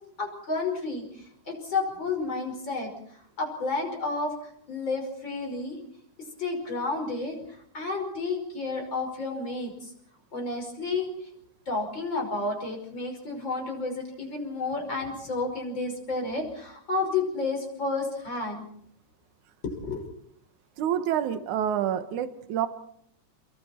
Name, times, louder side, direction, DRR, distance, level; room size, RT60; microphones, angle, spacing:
voice 1, 0.2-1.1 1.5-2.9 3.4-4.3 4.7-5.8 6.4-7.4 7.7-9.9 10.3-11.1 11.7-18.7 19.6-20.0, left 3 dB, 35° left, 2 dB, 6.0 m, -31 dB
voice 2, 20.8-22.7, right 10 dB, 75° right, 9 dB, 2.7 m, -27 dB
30.0 x 22.5 x 4.4 m, 0.69 s
omnidirectional pair, 3.5 m